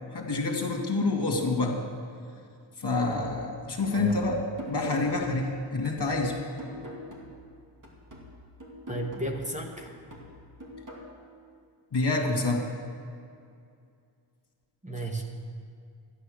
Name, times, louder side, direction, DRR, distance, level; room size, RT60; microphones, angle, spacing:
voice 1, 0.1-1.8 2.8-4.4 4.7-6.6 11.9-12.7, left 3 dB, 55° left, 1 dB, 2.2 m, -27 dB
sound 1, 3.1-7.5 7.8-11.1, equal, 40° right, 2.6 m, -44 dB
voice 2, 3.9-4.2 8.9-10.0 14.8-15.2, right 2 dB, 15° right, 1 dB, 1.2 m, -34 dB
12.5 x 10.5 x 6.5 m, 2.4 s
wide cardioid pair, 85°, 49 cm